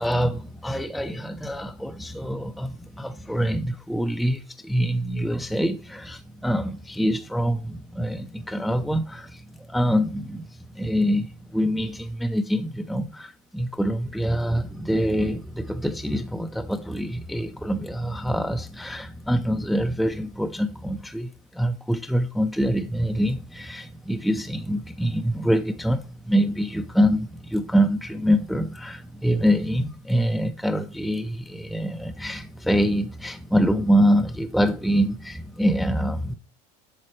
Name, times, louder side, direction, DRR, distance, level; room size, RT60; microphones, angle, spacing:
voice 1, 0.0-10.4 10.7-36.3, equal, ahead, 0.5 m, -25 dB
8.5 x 6.4 x 3.2 m
supercardioid pair, 130°, 18 cm